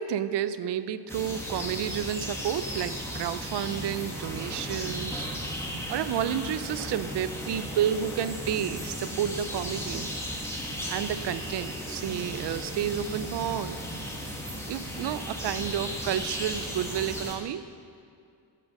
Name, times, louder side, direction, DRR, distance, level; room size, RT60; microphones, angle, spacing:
voice 1, 0.0-5.3 5.7-10.1 10.9-13.8 14.7-17.7, right 10 dB, 70° right, 14 dB, 0.5 m, -31 dB
sound 1, 1.1-17.3, equal, 5° left, 1.4 m, -35 dB
7.7 x 7.5 x 6.5 m, 2.4 s
wide cardioid pair, 130°, 42 cm